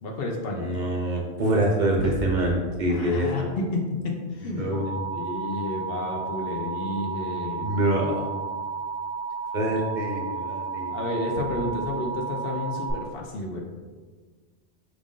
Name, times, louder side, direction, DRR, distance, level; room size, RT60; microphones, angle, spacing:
voice 1, 0.0-0.7 2.9-7.7 10.9-13.6, left 2 dB, 65° left, 0 dB, 0.8 m, -31 dB
voice 2, 0.5-3.5 4.5-5.1 7.6-8.2 9.5-10.9, right 1 dB, 55° right, 0 dB, 0.6 m, -25 dB
Alarm, 4.7-12.9, right 5 dB, 85° left, 1.9 m, -32 dB
4.9 x 2.5 x 3.6 m, 1.4 s
omnidirectional pair, 1.1 m